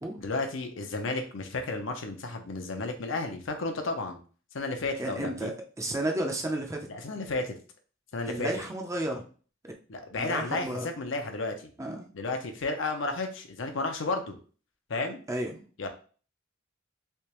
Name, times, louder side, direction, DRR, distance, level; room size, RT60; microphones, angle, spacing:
voice 1, 0.2-4.2 4.5-5.5 6.9-7.5 8.1-8.5 9.9-11.7 12.1-14.4 14.9-15.2 15.8-15.9, left 3 dB, 70° left, 5 dB, 0.6 m, -32 dB
voice 2, 5.0-5.5 5.8-6.9 8.3-9.2 9.6-9.7 10.1-10.9 11.8-12.1 15.3-15.6, right 1 dB, 15° right, 2 dB, 0.5 m, -32 dB
3.4 x 2.9 x 2.9 m, 0.40 s
head